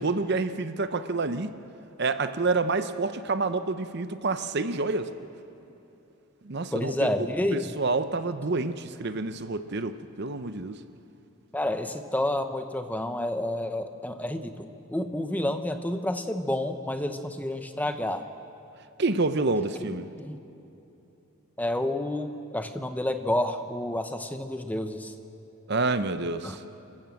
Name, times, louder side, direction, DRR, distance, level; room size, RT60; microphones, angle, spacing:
voice 1, 0.0-1.5 2.0-5.1 6.4-10.8 19.0-20.1 25.7-26.6, right 3 dB, 50° right, 11 dB, 0.7 m, -28 dB
voice 2, 6.7-7.7 11.5-18.3 19.8-19.9 20.2-20.4 21.6-25.1 26.4-26.6, left 1 dB, 5° left, 8 dB, 0.8 m, -29 dB
29.0 x 14.0 x 7.7 m, 2.9 s
head